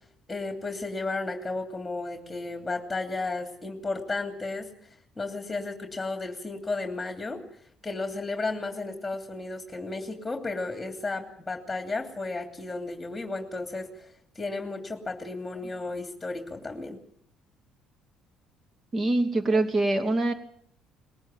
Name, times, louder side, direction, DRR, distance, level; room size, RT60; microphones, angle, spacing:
voice 1, 0.3-4.7 5.2-7.4 7.8-17.0, left 3 dB, 15° left, 4 dB, 2.9 m, -33 dB
voice 2, 18.9-20.3, right 2 dB, 35° right, 8 dB, 2.6 m, -24 dB
20.5 x 18.0 x 7.5 m, 0.68 s
hypercardioid pair, 60°, 0 cm